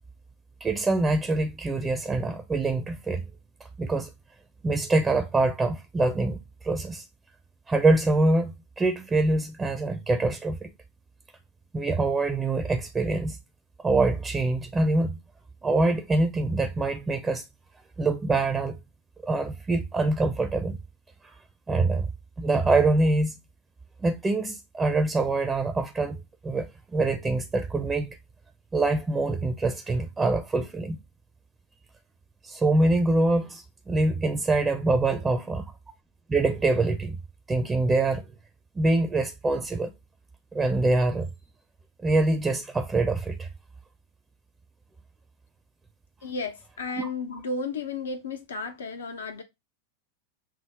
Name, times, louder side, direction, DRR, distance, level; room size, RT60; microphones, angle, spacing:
voice 1, 0.6-3.3 3.8-4.1 4.6-7.0 7.7-10.7 11.7-13.4 13.8-15.2 15.6-17.4 18.0-18.8 19.2-20.8 21.2-21.3 21.7-22.1 22.4-23.4 24.0-28.2 28.7-31.0 32.4-35.7 36.3-37.2 37.5-38.2 38.8-39.9 40.5-41.3 42.0-43.5 47.0-47.1, right 2 dB, 15° right, 0.5 m, -25 dB
voice 2, 46.2-49.4, left 3 dB, 65° left, 0.5 m, -33 dB
6.0 x 2.0 x 3.3 m
figure-of-eight pair, 90°, 0 cm